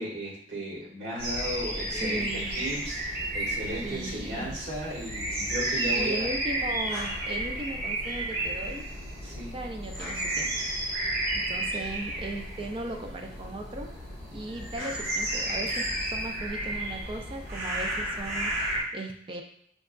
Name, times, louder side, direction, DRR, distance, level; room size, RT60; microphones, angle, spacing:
voice 1, 0.0-6.3 9.2-9.5, right 1 dB, 80° right, -4 dB, 1.4 m, -35 dB
sound 1, 1.2-18.8, right 1 dB, 60° right, 1.5 m, -32 dB
voice 2, 1.9-2.6 3.8-4.5 5.9-8.9 9.5-10.5 11.4-13.9 14.3-19.4, right 2 dB, 30° right, 3 dB, 0.4 m, -37 dB
5.1 x 2.4 x 2.2 m, 0.69 s
head